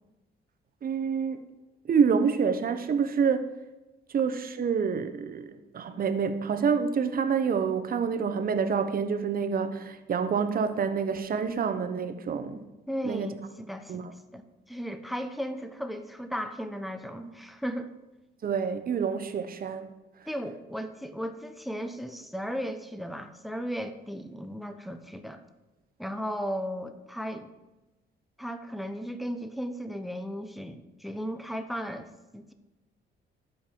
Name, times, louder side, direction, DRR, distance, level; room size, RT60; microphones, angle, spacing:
voice 1, 0.8-1.4 1.9-3.5 4.1-12.6 13.0-13.3 13.9-14.1 18.4-19.9, right 6 dB, 45° right, 9 dB, 0.9 m, -27 dB
voice 2, 12.9-14.1 14.3-17.9 20.3-25.4 26.0-27.5 28.4-32.5, equal, ahead, 8 dB, 0.8 m, -36 dB
12.5 x 5.5 x 4.5 m, 1.1 s
cardioid pair, 90°, 20 cm